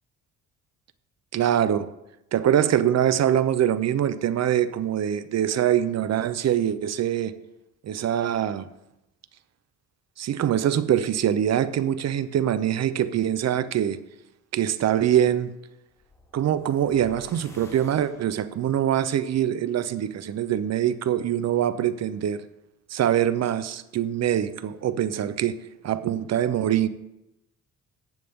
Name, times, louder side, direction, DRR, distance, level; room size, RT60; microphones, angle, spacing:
voice 1, 1.3-1.9 2.3-7.3 7.8-8.7 10.2-14.0 14.5-15.5 16.3-22.4 22.9-25.6 25.8-26.9, right 10 dB, 60° right, 0.8 m, -24 dB
sound 1, 15.9-18.7, left 1 dB, 10° left, 3.0 m, -49 dB
15.0 x 9.4 x 3.7 m
cardioid pair, 90°, 30 cm